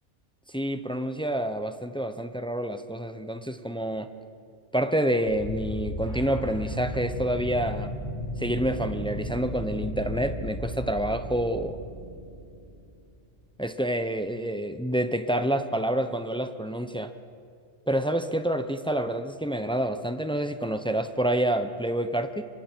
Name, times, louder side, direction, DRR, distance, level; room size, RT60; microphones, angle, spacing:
voice 1, 0.5-4.1 4.7-7.9 8.4-11.8 13.6-17.1 17.9-22.4, right 1 dB, 5° left, 9 dB, 0.6 m, -28 dB
sound 1, 5.3-13.0, equal, 80° left, 7.5 m, -35 dB
26.5 x 24.5 x 4.5 m, 2.4 s
omnidirectional pair, 1.2 m